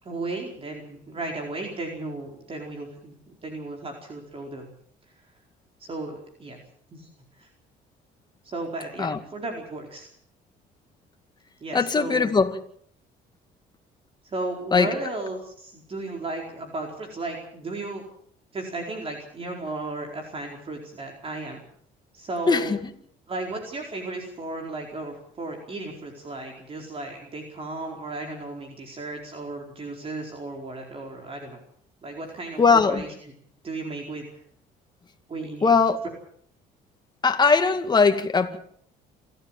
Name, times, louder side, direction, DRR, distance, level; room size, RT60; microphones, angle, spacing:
voice 1, 0.0-4.7 5.8-6.6 6.9-7.1 7.4-7.5 8.4-10.1 11.6-12.3 14.2-18.0 18.5-21.6 22.1-22.7 23.3-31.6 32.0-32.6 32.9-33.1 33.6-34.2 35.3-35.7, right 2 dB, 35° right, 4.5 m, -35 dB
voice 2, 11.7-12.6 14.7-14.9 22.5-22.9 32.6-33.0 35.6-36.0 37.2-38.6, left 4 dB, 25° left, 2.2 m, -20 dB
28.0 x 13.5 x 7.5 m
cardioid pair, 110°, 17 cm